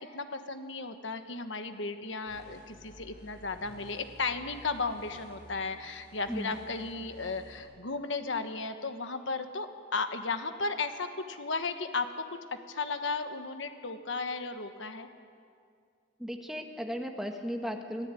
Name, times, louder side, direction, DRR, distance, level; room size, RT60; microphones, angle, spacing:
voice 1, 0.0-15.1, left 4 dB, 65° left, 8 dB, 1.4 m, -35 dB
sound 1, 2.3-7.6, equal, 45° left, 4.8 m, -53 dB
voice 2, 16.2-18.1, equal, ahead, 3 dB, 1.4 m, -36 dB
24.5 x 17.0 x 9.2 m, 2.3 s
head